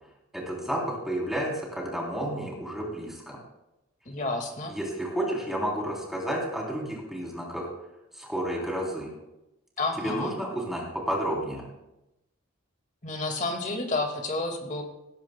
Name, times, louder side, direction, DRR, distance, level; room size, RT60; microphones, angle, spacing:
voice 1, 0.3-3.4 4.7-7.7 8.1-9.1 10.0-11.6, right 1 dB, ahead, -3 dB, 3.3 m, -31 dB
voice 2, 4.1-4.7 9.8-10.3 13.0-14.8, left 2 dB, 35° left, 3 dB, 1.9 m, -30 dB
18.0 x 13.5 x 2.2 m, 0.91 s
head